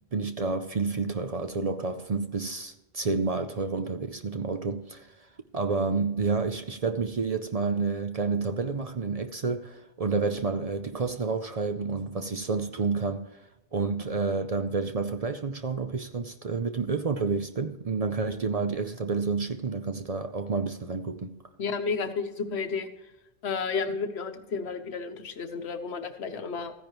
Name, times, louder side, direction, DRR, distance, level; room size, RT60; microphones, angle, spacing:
voice 1, 0.1-5.3 5.5-13.4 13.7-21.3, right 4 dB, 45° right, 0.6 m, -29 dB
voice 2, 21.6-22.9 23.4-26.7, left 5 dB, 80° left, 1.2 m, -32 dB
14.5 x 10.0 x 3.0 m
omnidirectional pair, 1.1 m